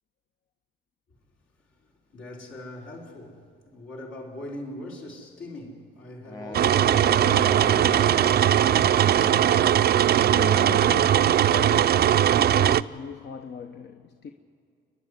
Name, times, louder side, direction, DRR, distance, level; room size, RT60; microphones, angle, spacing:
voice 1, 1.6-9.1 9.8-9.9, left 1 dB, 75° left, 4.6 m, -42 dB
sound 1, 6.3-10.1, left 2 dB, 15° left, 1.2 m, -38 dB
sound 2, 6.5-12.8, right 10 dB, 55° right, 0.5 m, -20 dB
voice 2, 10.2-14.3, left 6 dB, 60° left, 0.9 m, -37 dB
29.0 x 11.0 x 9.7 m
cardioid pair, 90°, 20 cm